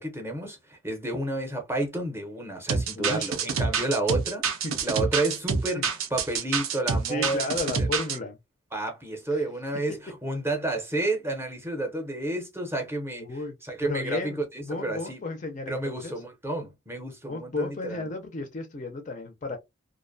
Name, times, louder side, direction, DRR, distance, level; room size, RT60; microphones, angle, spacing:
voice 1, 0.0-4.4 4.8-7.9 8.7-15.2 15.7-18.1, right 2 dB, 10° right, 0.6 m, -31 dB
sound 1, 2.7-8.2, right 5 dB, 75° right, 0.5 m, -27 dB
voice 2, 3.0-3.3 3.9-4.0 4.6-4.8 7.1-8.4 13.2-13.6 13.8-14.4 14.6-16.2 17.3-19.6, left 3 dB, 35° left, 0.4 m, -33 dB
2.5 x 2.1 x 2.5 m
head